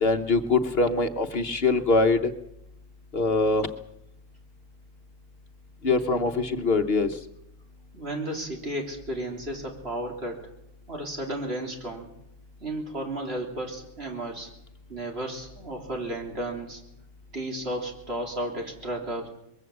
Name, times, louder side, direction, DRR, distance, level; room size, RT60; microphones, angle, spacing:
voice 1, 0.0-2.3 3.1-3.7 5.8-7.2, left 3 dB, 50° left, 7 dB, 1.2 m, -23 dB
voice 2, 7.9-10.4 10.9-12.1 12.6-14.5 14.9-16.8 17.3-19.3, right 1 dB, 50° right, 1 dB, 3.9 m, -33 dB
22.0 x 15.5 x 7.9 m, 0.83 s
omnidirectional pair, 1.3 m